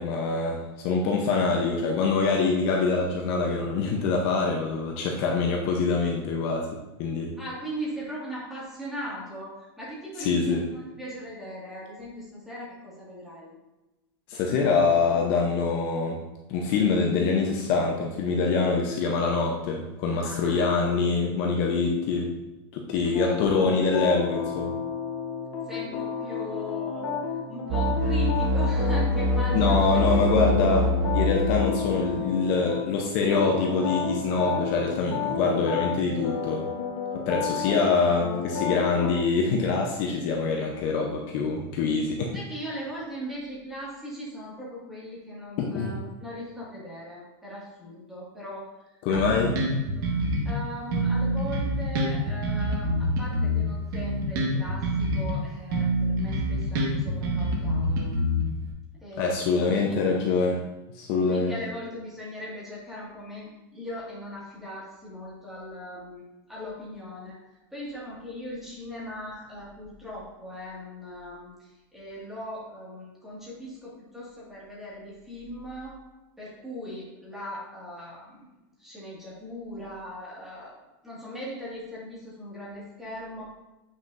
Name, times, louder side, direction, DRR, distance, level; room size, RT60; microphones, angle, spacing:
voice 1, 0.0-6.7 7.0-7.3 10.2-10.6 14.3-16.2 16.5-22.3 22.7-24.7 29.5-36.7 37.3-42.4 45.6-46.0 49.0-49.5 59.2-60.6 60.9-61.5, left 4 dB, 45° left, 0 dB, 0.7 m, -25 dB
voice 2, 7.4-13.6 20.2-20.7 23.0-23.4 25.7-30.3 42.3-48.7 49.1-49.4 49.8-50.0 50.4-58.2 59.0-60.0 61.3-76.0 76.4-78.5 78.8-80.8 81.0-83.4, equal, 5° right, -7 dB, 1.9 m, -39 dB
sound 1, 23.1-32.9 33.3-39.2, left 6 dB, 90° left, 1.2 m, -31 dB
sound 2, 27.7-31.8, left 1 dB, 40° right, 0.5 m, -24 dB
Bass guitar, 49.1-50.6 50.9-55.4 55.7-58.7, equal, 55° right, 1.5 m, -26 dB
7.3 x 6.1 x 2.6 m, 1.0 s
supercardioid pair, 165°, 13 cm